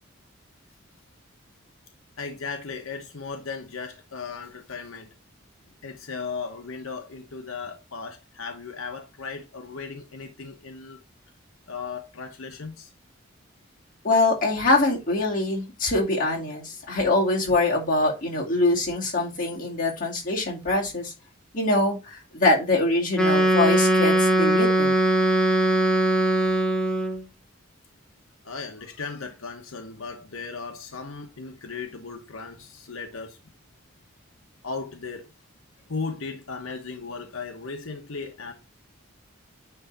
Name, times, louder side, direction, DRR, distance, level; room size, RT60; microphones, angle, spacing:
voice 1, 2.2-5.1 5.8-11.0 11.7-12.9 28.4-33.4 34.6-35.3 35.9-38.5, left 4 dB, 85° left, 1.1 m, -36 dB
voice 2, 14.0-21.1 21.5-24.9, left 2 dB, 40° left, 2.4 m, -24 dB
Wind instrument woodwind instrument, 23.1-27.2, right 1 dB, 5° left, 0.8 m, -20 dB
9.4 x 3.4 x 4.0 m
head